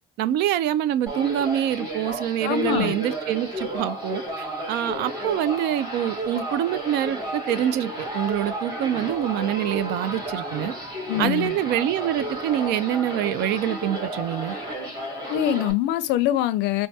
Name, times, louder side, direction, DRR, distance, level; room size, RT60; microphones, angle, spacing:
voice 1, 0.2-10.7 11.2-14.5, right 11 dB, 85° right, 0.4 m, -25 dB
sound 1, 1.1-15.7, right 1 dB, 25° right, 2.3 m, -32 dB
voice 2, 2.4-3.0 11.1-11.6 15.3-16.9, left 12 dB, 90° left, 0.5 m, -24 dB
4.5 x 2.2 x 2.6 m
cardioid pair, 110°, 17 cm